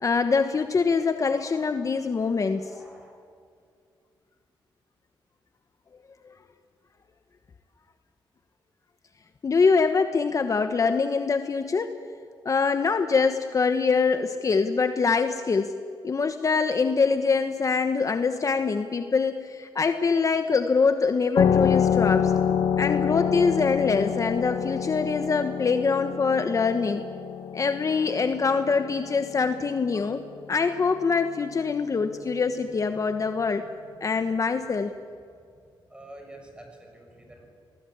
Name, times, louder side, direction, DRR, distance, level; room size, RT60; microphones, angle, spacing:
voice 1, 0.0-2.7 9.4-11.9 12.4-15.7 16.0-22.3 22.8-27.0 27.5-30.2 30.5-33.6 34.0-34.9, left 5 dB, 40° left, 8 dB, 1.1 m, -24 dB
voice 2, 2.7-3.1 35.9-37.5, right 1 dB, 10° right, 3 dB, 6.3 m, -47 dB
sound 1, 21.4-30.6, left 8 dB, 85° left, 1.7 m, -27 dB
25.5 x 19.5 x 8.7 m, 2.3 s
cardioid pair, 105°, 9 cm